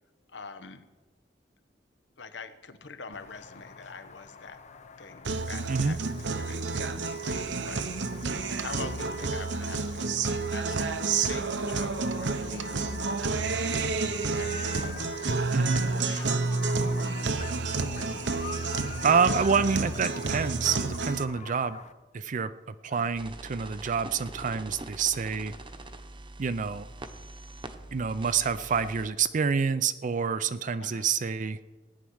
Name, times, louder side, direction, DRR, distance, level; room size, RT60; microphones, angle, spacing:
voice 1, 0.3-0.9 2.2-4.6 5.0-6.9 7.2-10.1 10.5-13.9 14.3-15.1 15.8-16.3 16.9-17.6 17.9-18.4 22.9-23.1 30.8-31.1, left 4 dB, 85° left, 10 dB, 1.1 m, -45 dB
sound 1, 3.1-21.9, left 5 dB, 40° left, 0.8 m, -46 dB
Guitar, 5.2-21.2, right 4 dB, 85° right, 0.9 m, -30 dB
voice 2, 15.5-15.9 19.0-21.8 22.1-25.5 26.4-26.9 27.9-31.7, right 6 dB, 45° right, 12 dB, 0.5 m, -27 dB
sound 2, 23.1-29.1, right 2 dB, 30° right, 1.0 m, -44 dB
17.5 x 9.8 x 6.3 m, 1.2 s
head